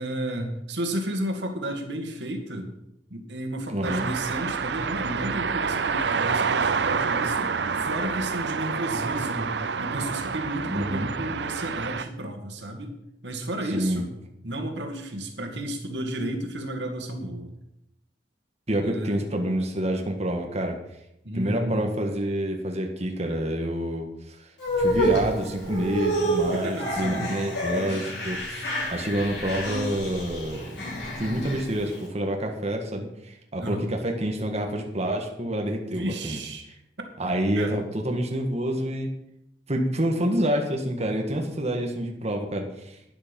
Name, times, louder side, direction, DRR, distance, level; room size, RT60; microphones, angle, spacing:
voice 1, 0.0-2.7 3.1-9.5 9.8-13.0 13.2-14.1 14.4-17.5 18.8-19.2 21.2-21.9 26.5-27.2 33.6-33.9 35.8-36.7 37.6-37.7, right 1 dB, 90° right, 4 dB, 2.1 m, -32 dB
voice 2, 3.7-4.1 10.7-11.1 13.7-14.0 18.7-20.8 21.3-24.5 24.8-30.8 31.0-36.4 37.2-39.1 39.7-43.0, right 1 dB, 40° right, 2 dB, 1.6 m, -28 dB
sound 1, 3.8-12.0, right 5 dB, 70° right, 0.6 m, -28 dB
sound 2, 24.6-32.0, right 1 dB, 80° left, 5.2 m, -29 dB
12.0 x 10.0 x 5.3 m, 0.81 s
head